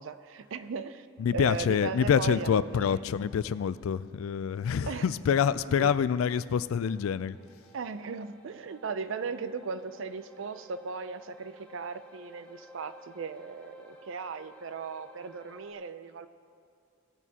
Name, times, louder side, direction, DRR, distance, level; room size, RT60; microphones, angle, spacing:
voice 1, 0.0-1.1 1.3-2.9 4.8-5.1 5.7-6.0 7.7-16.3, right 5 dB, 70° right, 12 dB, 0.5 m, -37 dB
voice 2, 1.2-7.4, left 7 dB, 85° left, 16 dB, 0.3 m, -26 dB
sound 1, 6.1-15.7, equal, 5° left, 0.8 m, -54 dB
18.0 x 9.2 x 2.9 m, 2.5 s
head